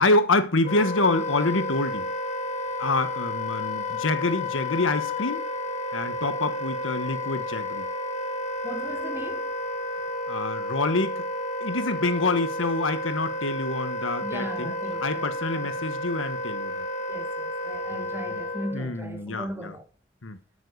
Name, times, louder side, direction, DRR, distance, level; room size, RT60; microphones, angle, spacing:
voice 1, 0.0-2.1 2.8-5.4 5.9-7.9 10.3-11.3 11.6-14.7 15.0-16.9 17.9-18.4 18.7-19.8 20.2-20.4, left 2 dB, 90° left, 1.5 m, -26 dB
Wind instrument woodwind instrument, 0.6-18.8, left 1 dB, 35° left, 1.5 m, -31 dB
voice 2, 8.6-9.5 14.2-15.9 17.1-19.9, equal, 10° right, 1.8 m, -38 dB
12.5 x 7.8 x 4.8 m
head